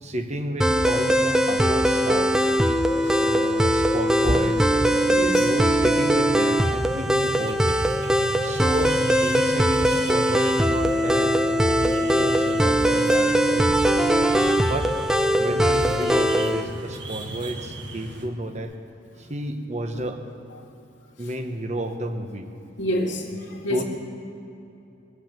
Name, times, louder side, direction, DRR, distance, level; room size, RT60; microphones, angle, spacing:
voice 1, 0.0-2.5 3.0-5.0 5.4-7.8 8.4-13.7 14.7-14.9 15.4-18.7 19.2-20.2 21.2-22.5 23.7-23.8, right 1 dB, 40° right, 6 dB, 1.1 m, -31 dB
sound 1, 0.6-16.6, equal, 5° right, 0.5 m, -21 dB
voice 2, 3.0-3.3 4.2-4.4 5.0-5.5 9.4-9.5 19.9-20.0 22.8-23.8, equal, 85° left, 0 dB, 2.3 m, -28 dB
sound 2, 6.6-18.3, right 1 dB, 70° right, 1.6 m, -36 dB
22.0 x 8.2 x 7.6 m, 2.8 s
head